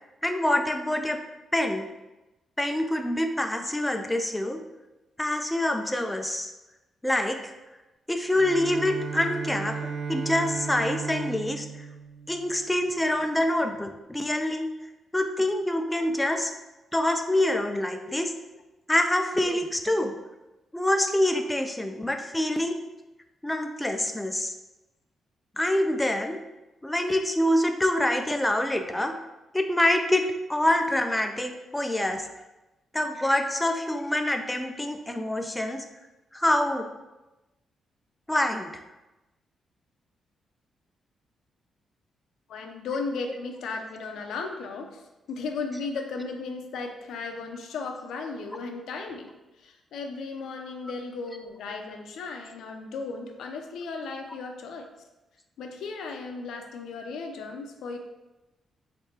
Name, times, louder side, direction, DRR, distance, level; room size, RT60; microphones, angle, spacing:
voice 1, 0.2-1.2 1.5-1.9 2.6-4.6 5.2-6.5 7.0-7.5 8.1-9.8 10.1-11.9 12.3-14.7 15.1-16.5 16.9-18.3 18.9-20.1 20.7-22.8 23.4-24.5 25.6-26.4 26.8-29.2 29.5-30.2 30.5-32.3 32.9-35.8 36.3-36.9 38.3-38.7, left 1 dB, 10° left, 5 dB, 0.3 m, -26 dB
Bowed string instrument, 8.2-13.2, right 5 dB, 55° right, 0.5 m, -35 dB
voice 2, 42.5-45.0 45.3-54.9 55.6-58.0, left 4 dB, 85° left, 3 dB, 0.6 m, -35 dB
3.3 x 3.3 x 4.3 m, 1.0 s
cardioid pair, 125°, 0 cm